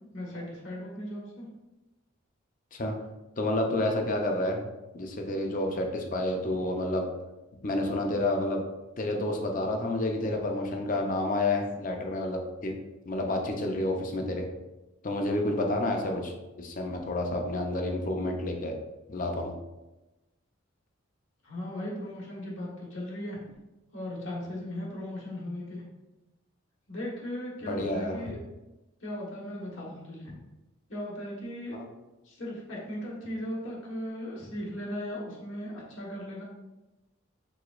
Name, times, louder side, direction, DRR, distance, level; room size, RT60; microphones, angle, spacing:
voice 1, 0.1-1.5 21.4-23.4 23.9-25.8 26.9-28.4 29.0-30.3 30.9-31.8 32.2-36.4, left 1 dB, 70° left, -4 dB, 1.4 m, -37 dB
voice 2, 3.4-4.6 4.9-7.1 7.6-8.6 9.0-12.7 13.0-14.5 15.0-16.3 16.6-18.8 19.1-19.5 27.7-28.2 31.7-31.8, left 1 dB, 40° left, 3 dB, 0.6 m, -29 dB
4.9 x 3.9 x 2.5 m, 1.0 s
head